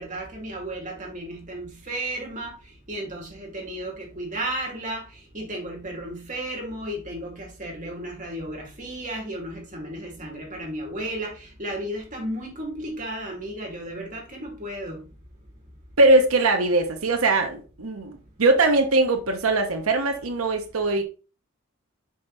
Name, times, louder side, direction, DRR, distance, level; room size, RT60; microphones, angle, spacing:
voice 1, 0.0-2.5 2.9-5.0 5.3-15.0, right 1 dB, 35° right, 2.5 m, -34 dB
voice 2, 16.0-21.0, right 2 dB, 90° right, 1.0 m, -21 dB
5.5 x 5.2 x 4.0 m
head